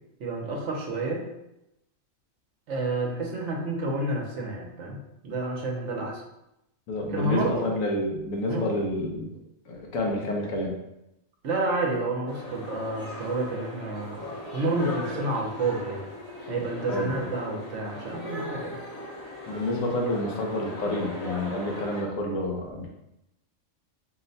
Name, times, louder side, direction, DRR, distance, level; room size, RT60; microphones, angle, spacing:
voice 1, 0.2-1.3 2.7-5.0 5.2-6.2 7.0-7.7 8.5-8.7 11.4-16.1 16.5-18.8, right 2 dB, 70° right, 0 dB, 1.1 m, -29 dB
voice 2, 6.9-9.3 9.7-10.8 16.9-17.2 19.5-22.9, left 1 dB, 80° left, 0 dB, 1.2 m, -29 dB
sound 1, 12.3-22.0, left 1 dB, 35° left, 0.8 m, -38 dB
4.5 x 2.2 x 3.9 m, 0.87 s
omnidirectional pair, 1.4 m